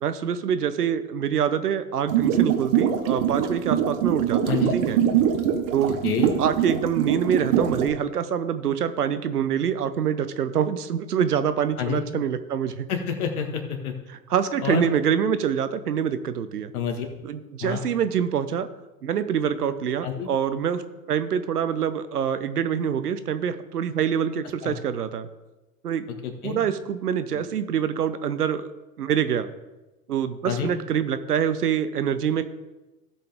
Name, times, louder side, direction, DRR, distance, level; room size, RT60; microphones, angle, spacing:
voice 1, 0.0-5.0 5.7-5.9 6.4-12.9 14.1-16.7 17.2-18.7 19.0-20.8 21.1-25.3 25.8-26.0 26.4-28.7 29.0-29.5 30.1-32.4, right 8 dB, 80° right, 11 dB, 0.8 m, -25 dB
sound 1, 2.1-7.9, right 9 dB, 55° right, 1.4 m, -23 dB
voice 2, 5.9-6.3 11.8-12.0 12.9-13.9 14.6-14.8 16.7-17.1 17.6-17.8 20.0-20.3 24.6-24.8 26.2-26.6 30.4-30.7, left 7 dB, 70° left, 4 dB, 1.9 m, -28 dB
16.0 x 5.8 x 3.5 m, 1.1 s
figure-of-eight pair, 85°, 45 cm